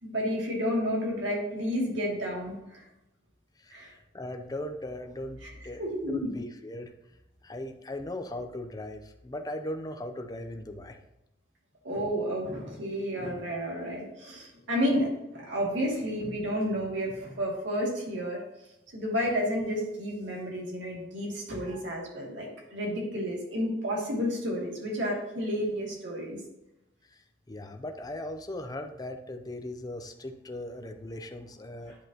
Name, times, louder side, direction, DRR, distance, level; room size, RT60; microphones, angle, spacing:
voice 1, 0.0-2.8 3.7-3.9 5.8-6.3 11.8-18.4 18.9-26.4, equal, 65° right, -3 dB, 2.5 m, -31 dB
voice 2, 3.6-5.8 6.1-11.0 27.0-32.0, left 1 dB, 20° left, 6 dB, 0.6 m, -39 dB
9.9 x 5.5 x 2.9 m, 0.90 s
head